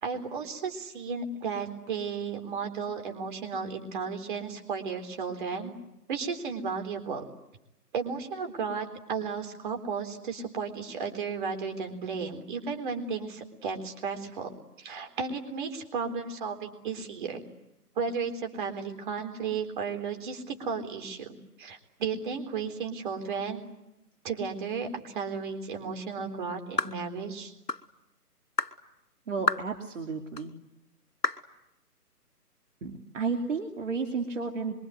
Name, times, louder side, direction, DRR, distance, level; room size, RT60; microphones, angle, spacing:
voice 1, 0.0-5.7 6.1-7.2 7.9-14.5 14.8-17.5 18.0-23.6 24.2-27.5, right 5 dB, 30° right, 5 dB, 3.8 m, -34 dB
sound 1, 26.8-27.0 27.7-27.9 28.6-28.8 29.5-29.7 30.4-30.5 31.2-31.5, left 3 dB, 85° left, 2.3 m, -29 dB
voice 2, 29.3-30.5 32.8-34.7, right 4 dB, 50° right, 4 dB, 2.7 m, -32 dB
26.0 x 24.0 x 9.4 m, 0.89 s
figure-of-eight pair, 150°, 48 cm